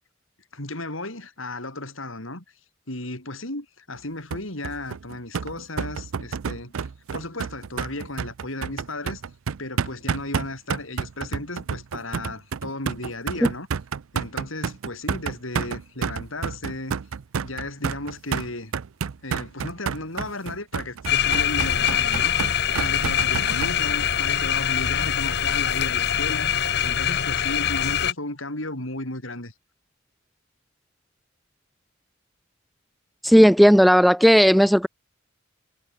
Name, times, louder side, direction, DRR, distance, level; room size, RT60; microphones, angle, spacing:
voice 1, 0.5-2.4 2.9-9.2 9.6-13.7 14.1-17.0 17.4-18.7 19.2-22.5 22.8-26.5 26.8-29.5, left 2 dB, 75° left, 7.5 m, -34 dB
sound 1, 4.3-23.7, right 6 dB, 85° right, 0.5 m, -30 dB
sound 2, 21.1-28.1, left 9 dB, 55° left, 1.5 m, -23 dB
voice 2, 33.2-34.9, equal, ahead, 0.5 m, -14 dB
head